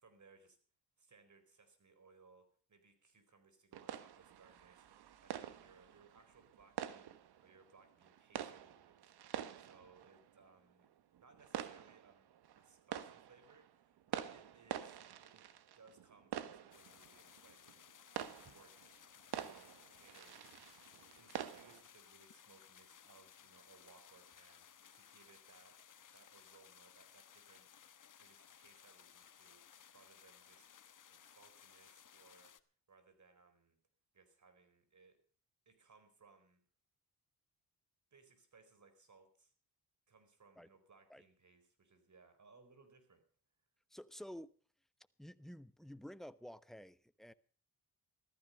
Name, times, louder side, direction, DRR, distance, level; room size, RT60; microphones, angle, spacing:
voice 1, 0.0-0.6 1.0-10.9 11.2-15.4 15.7-17.6 18.1-19.0 19.4-20.8 21.1-24.7 24.9-27.7 28.2-30.7 31.1-32.6 32.9-33.8 34.1-35.2 35.6-36.6 38.1-39.5 40.1-43.2, right 4 dB, 50° right, 4.6 m, -66 dB
sound 1, 3.7-21.8, right 10 dB, 80° right, 1.4 m, -48 dB
sound 2, 16.7-32.6, left 8 dB, 50° left, 1.2 m, -61 dB
voice 2, 43.9-44.5 45.2-47.3, equal, ahead, 1.0 m, -51 dB
15.5 x 14.0 x 5.4 m
cardioid pair, 60°, 38 cm